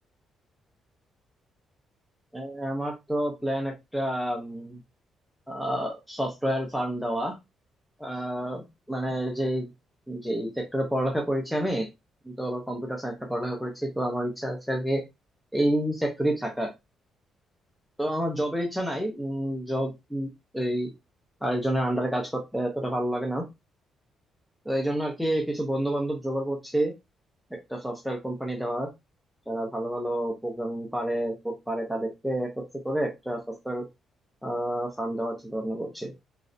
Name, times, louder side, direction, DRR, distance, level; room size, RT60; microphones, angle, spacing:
voice 1, 2.3-4.8 5.5-7.4 8.0-9.7 10.1-11.9 12.3-15.0 15.5-16.7 18.0-20.3 20.5-20.9 21.4-23.4 24.7-26.9 27.7-28.9 29.5-32.5 32.8-33.8 34.4-36.1, right 1 dB, ahead, 0 dB, 0.6 m, -29 dB
3.1 x 2.6 x 2.5 m, 0.22 s
cardioid pair, 150°, 0 cm